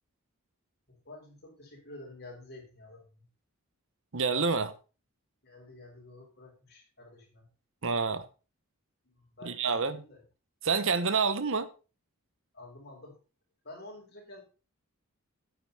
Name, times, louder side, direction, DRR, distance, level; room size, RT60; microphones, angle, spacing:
voice 1, 0.9-3.3 5.4-7.5 9.0-10.2 12.5-13.2 13.6-14.4, left 2 dB, 45° left, 4.7 m, -49 dB
voice 2, 4.1-4.7 7.8-8.3 9.4-10.0 10.6-11.7, right 4 dB, 60° right, 0.9 m, -28 dB
9.4 x 9.3 x 4.2 m
head